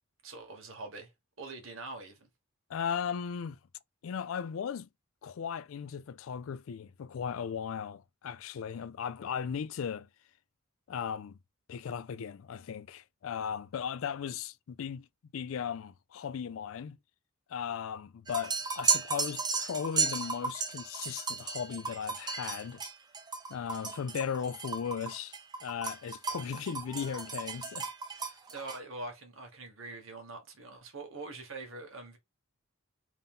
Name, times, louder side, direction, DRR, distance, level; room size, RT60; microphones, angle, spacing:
voice 1, 0.2-1.1 1.4-2.3 28.5-32.2, right 3 dB, 65° right, 1.4 m, -44 dB
voice 2, 2.7-3.6 4.0-4.9 5.2-10.1 10.9-11.4 11.7-15.1 15.3-17.0 17.5-22.8 23.5-28.3, left 7 dB, 70° left, 0.4 m, -37 dB
sound 1, 18.3-28.8, right 5 dB, 20° right, 0.6 m, -34 dB
3.7 x 2.7 x 3.7 m
head